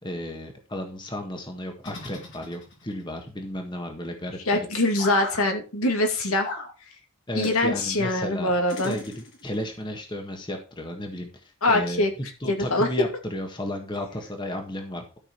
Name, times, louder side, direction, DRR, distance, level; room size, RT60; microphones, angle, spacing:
voice 1, 0.0-4.4 7.3-8.5 8.8-12.0 12.4-15.2, left 1 dB, 20° left, 3 dB, 1.6 m, -33 dB
sound 1, 1.8-3.0 5.0-5.4 6.4-6.7 7.4-7.6 8.7-9.5, left 2 dB, 55° left, 4.0 m, -37 dB
voice 2, 4.5-6.5 7.3-9.0 11.6-12.1 12.5-13.1, left 2 dB, 75° left, 3 dB, 2.5 m, -23 dB
13.0 x 6.2 x 4.6 m, 0.33 s
head